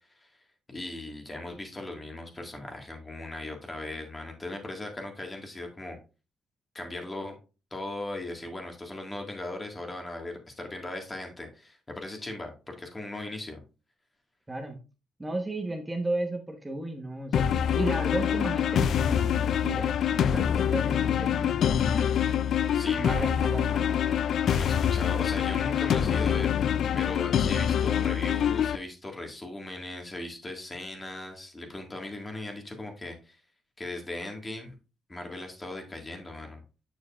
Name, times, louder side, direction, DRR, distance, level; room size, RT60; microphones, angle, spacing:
voice 1, 0.7-6.0 6.8-7.4 7.7-13.6 22.7-23.3 24.0-26.5 26.9-33.4 33.8-34.7 35.1-36.6, left 2 dB, 20° left, 3 dB, 1.7 m, -38 dB
voice 2, 14.5-14.8 15.2-22.1 22.9-24.0, right 2 dB, 15° right, 2 dB, 1.1 m, -34 dB
sound 1, 17.3-28.8, left 9 dB, 65° left, 0.3 m, -25 dB
7.1 x 6.3 x 2.4 m, 0.32 s
cardioid pair, 90°, 0 cm